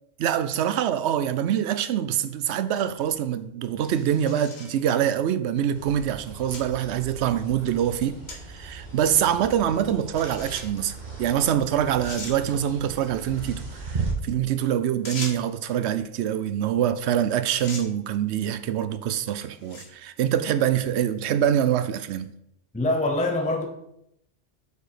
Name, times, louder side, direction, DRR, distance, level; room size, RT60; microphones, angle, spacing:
voice 1, 0.2-22.3, right 10 dB, 85° right, 0.9 m, -25 dB
sound 1, 3.8-4.8 5.5-5.6 6.5-6.6 7.1-7.2 8.3-8.4 8.7-8.8 10.2-10.8 11.5-11.6 12.0-12.4 15.0-15.6 16.9-17.2 17.5-17.9 18.7-18.9 19.5-20.0, left 3 dB, 75° left, 1.5 m, -39 dB
sound 2, 5.7-14.1, right 4 dB, 45° right, 1.3 m, -37 dB
voice 2, 22.7-23.7, left 2 dB, 10° left, 0.6 m, -24 dB
6.6 x 4.9 x 4.9 m
omnidirectional pair, 1.1 m